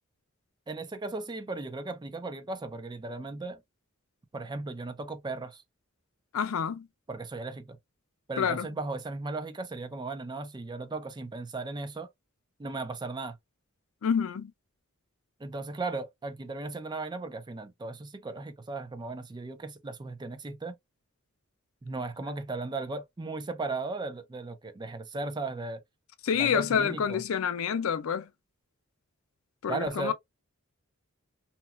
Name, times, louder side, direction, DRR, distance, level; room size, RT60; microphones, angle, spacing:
voice 1, 0.7-3.6 4.3-5.6 7.1-7.8 8.3-12.1 12.6-13.4 15.4-20.7 21.8-25.8 26.4-27.2 29.7-30.1, right 3 dB, 20° right, 0.4 m, -36 dB
voice 2, 6.3-6.9 8.4-8.7 14.0-14.5 26.2-28.3 29.6-30.1, left 7 dB, 80° left, 0.4 m, -28 dB
2.8 x 2.2 x 2.3 m
head